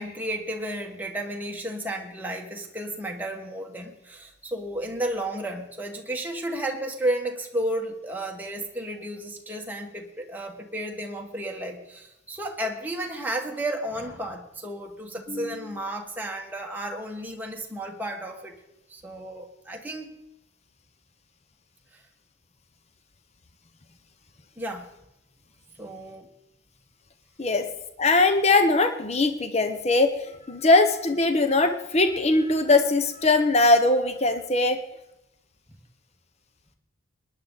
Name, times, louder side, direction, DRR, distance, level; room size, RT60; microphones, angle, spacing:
voice 1, 0.0-18.6 18.9-20.2 21.9-22.0 24.6-24.9 25.8-26.3, right 1 dB, 10° right, 1 dB, 1.5 m, -33 dB
voice 2, 28.0-34.8, left 2 dB, 30° left, 8 dB, 0.8 m, -21 dB
19.0 x 10.5 x 4.0 m, 0.88 s
head